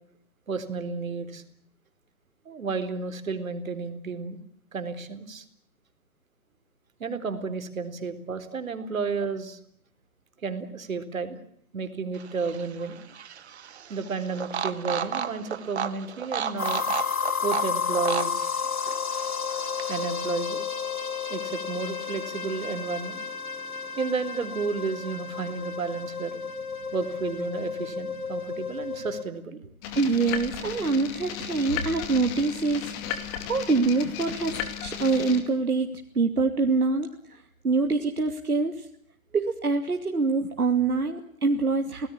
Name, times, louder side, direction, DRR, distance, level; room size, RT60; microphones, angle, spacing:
voice 1, 0.5-1.4 2.5-4.4 4.7-5.4 7.0-9.6 10.4-11.4 11.7-13.0 13.9-16.9 17.4-18.5 19.9-20.6 21.3-23.2 24.0-26.4 26.9-29.6, right 4 dB, 65° right, 10 dB, 4.0 m, -32 dB
sound 1, 12.1-20.3, right 8 dB, 50° right, 1.7 m, -34 dB
sound 2, 16.6-29.2, left 6 dB, 80° left, 4.0 m, -32 dB
sound 3, 29.8-35.4, left 9 dB, 20° left, 2.5 m, -35 dB
voice 2, 29.9-32.9 33.2-38.9 39.3-42.1, right 4 dB, 90° right, 4 dB, 2.8 m, -25 dB
27.0 x 19.0 x 8.6 m, 0.69 s
hypercardioid pair, 150°, 43 cm